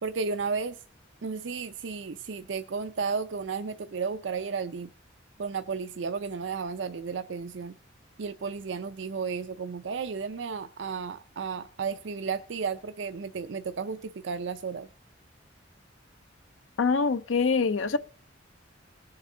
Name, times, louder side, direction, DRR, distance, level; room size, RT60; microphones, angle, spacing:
voice 1, 0.0-0.8 1.2-4.9 5.4-7.7 8.2-14.9, right 5 dB, 65° right, 0.5 m, -33 dB
voice 2, 16.8-18.0, left 4 dB, 80° left, 0.6 m, -24 dB
19.5 x 6.7 x 3.7 m
head